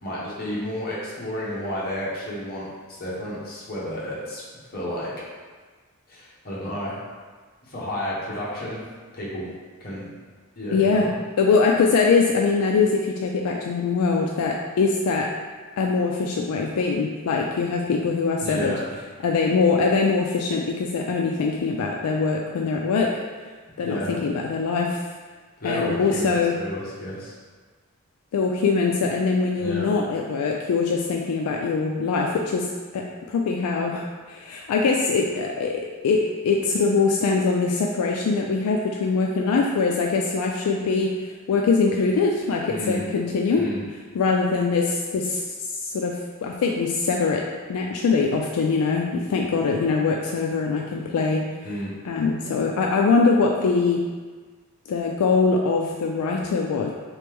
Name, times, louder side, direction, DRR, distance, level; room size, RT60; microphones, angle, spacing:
voice 1, 0.0-4.4 4.7-5.1 6.1-6.9 7.6-8.8 9.1-9.5 9.8-10.1 10.6-11.1 18.4-18.8 23.8-24.2 25.6-27.3 29.6-29.9 42.7-43.0 43.6-43.8 51.6-51.9, equal, 45° left, -7 dB, 1.1 m, -31 dB
voice 2, 10.7-11.1 11.4-15.3 15.8-18.7 19.2-23.2 23.8-25.0 25.6-26.5 28.3-43.7 44.1-45.4 45.7-51.6 52.0-54.0 54.9-56.9, left 4 dB, 80° left, 0 dB, 0.3 m, -23 dB
3.3 x 3.2 x 3.4 m, 1.4 s
head